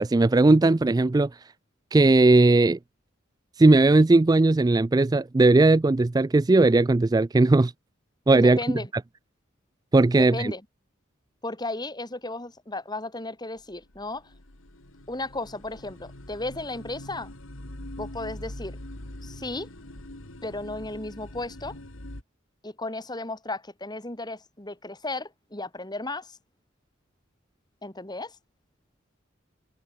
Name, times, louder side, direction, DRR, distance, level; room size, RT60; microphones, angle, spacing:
voice 1, 0.0-1.4 1.9-2.8 3.6-7.7 8.3-8.6 9.9-10.5, right 2 dB, 20° right, 0.3 m, -18 dB
voice 2, 8.4-8.9 10.2-10.6 11.4-14.2 15.1-17.3 18.0-18.8 19.2-19.7 20.4-21.8 22.6-26.4 27.8-28.4, left 2 dB, 20° left, 3.6 m, -34 dB
sound 1, 13.6-22.2, left 1 dB, 85° left, 3.1 m, -43 dB
head